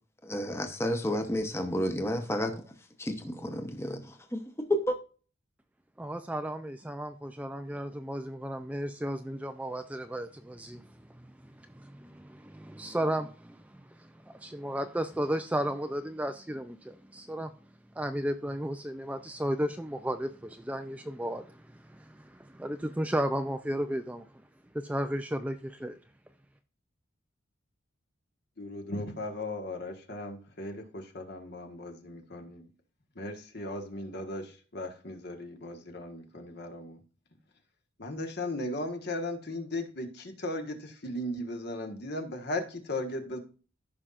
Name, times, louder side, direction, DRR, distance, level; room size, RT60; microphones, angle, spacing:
voice 1, 0.3-2.5 3.0-4.0 4.3-4.4 4.7-5.0, equal, 15° left, 0.9 m, -30 dB
voice 2, 6.0-17.5 18.0-24.3 24.7-26.0, right 1 dB, 5° right, 0.4 m, -34 dB
voice 3, 28.6-32.7 33.1-37.0 38.0-43.4, left 1 dB, 50° left, 1.5 m, -37 dB
14.5 x 5.6 x 2.5 m
head